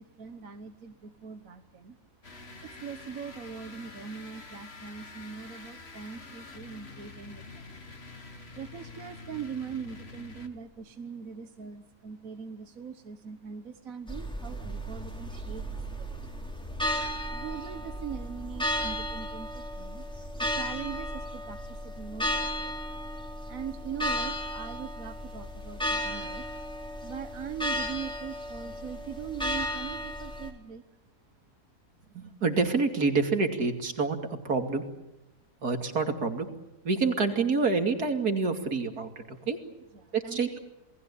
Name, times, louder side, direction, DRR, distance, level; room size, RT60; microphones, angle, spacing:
voice 1, 0.0-2.0 2.6-7.7 8.5-16.4 17.3-23.0 23.5-26.4 27.0-30.8 39.9-40.4, right 7 dB, 60° right, 8 dB, 1.6 m, -41 dB
sound 1, 2.2-10.7, left 3 dB, 40° left, 2.4 m, -47 dB
sound 2, 14.1-30.5, equal, 5° left, 3.7 m, -34 dB
voice 2, 32.1-34.2 34.4-34.8 35.6-36.5 36.8-39.6 40.1-40.6, right 4 dB, 75° right, 6 dB, 3.1 m, -27 dB
28.5 x 20.0 x 8.5 m, 0.93 s
omnidirectional pair, 1.6 m